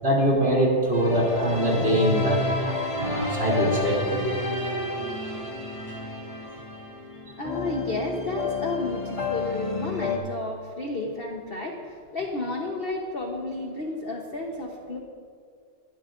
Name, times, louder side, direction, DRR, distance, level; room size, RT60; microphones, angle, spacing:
voice 1, 0.0-4.2, right 1 dB, 30° right, -5 dB, 3.2 m, -23 dB
sound 1, 0.9-10.2, left 3 dB, 20° left, 1.4 m, -30 dB
voice 2, 7.3-15.0, left 2 dB, 35° left, 1 dB, 1.0 m, -32 dB
22.5 x 13.0 x 2.6 m, 2.1 s
omnidirectional pair, 2.2 m